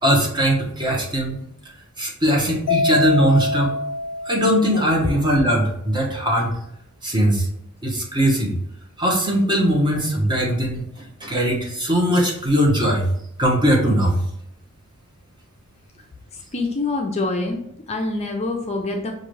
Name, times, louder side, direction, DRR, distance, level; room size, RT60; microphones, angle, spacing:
voice 1, 0.0-1.4 2.0-3.7 4.2-6.5 7.0-7.5 7.8-8.5 9.0-10.8 11.2-13.1 13.4-14.2, equal, 20° right, -2 dB, 1.0 m, -20 dB
Mallet percussion, 2.7-5.1, left 3 dB, 80° left, 0.5 m, -25 dB
voice 2, 16.5-19.1, left 2 dB, 30° left, 2 dB, 0.5 m, -25 dB
5.8 x 2.5 x 3.2 m, 0.74 s
head